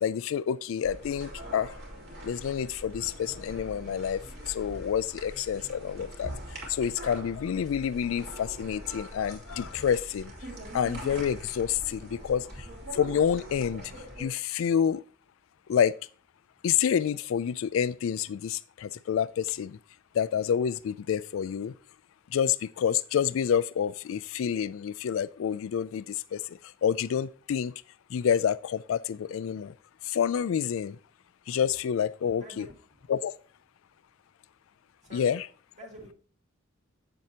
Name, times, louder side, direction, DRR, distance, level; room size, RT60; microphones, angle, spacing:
voice 1, 0.0-1.7 2.2-4.2 4.5-6.3 6.7-10.3 10.7-12.5 12.9-13.8 14.2-15.0 15.7-15.9 16.6-19.8 20.1-21.7 22.3-26.0 26.3-26.4 26.8-27.7 28.1-29.7 30.1-31.0 31.5-32.7 33.1-33.3 35.1-35.5, left 8 dB, 75° left, 0.3 m, -28 dB
sound 1, 0.8-14.3, right 1 dB, 55° right, 2.9 m, -43 dB
voice 2, 32.4-33.1 35.0-35.4 35.8-36.1, equal, 35° right, 2.5 m, -48 dB
7.9 x 7.5 x 2.8 m
head